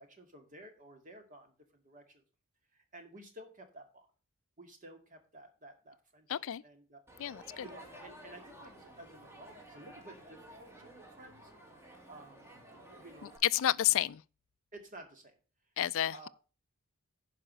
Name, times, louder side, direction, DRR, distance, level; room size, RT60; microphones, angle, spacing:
voice 1, 0.0-2.2 2.7-4.1 4.6-7.0 7.6-11.5 11.9-12.6 12.9-13.4 14.7-15.4 16.1-16.3, right 1 dB, 35° right, 2.1 m, -53 dB
voice 2, 6.3-6.6 7.2-7.6 13.4-14.2 15.8-16.3, left 12 dB, 60° left, 0.4 m, -30 dB
Crowd, 7.1-13.4, right 1 dB, 10° right, 2.0 m, -53 dB
11.0 x 5.0 x 6.2 m
head